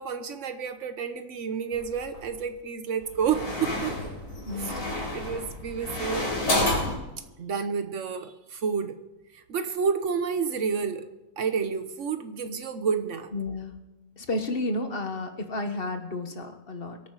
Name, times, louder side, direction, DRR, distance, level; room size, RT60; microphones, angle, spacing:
voice 1, 0.0-4.0 4.5-4.8 5.1-6.3 7.4-8.9 9.3-11.1 11.4-13.3, right 6 dB, 55° right, 9 dB, 1.4 m, -30 dB
sound 1, 1.7-2.4 3.0-7.0, left 1 dB, 75° left, 4.2 m, -30 dB
voice 2, 4.4-4.9 13.3-13.8 14.2-17.0, left 2 dB, 40° left, 6 dB, 1.4 m, -32 dB
23.5 x 9.0 x 4.8 m, 0.99 s
omnidirectional pair, 1.6 m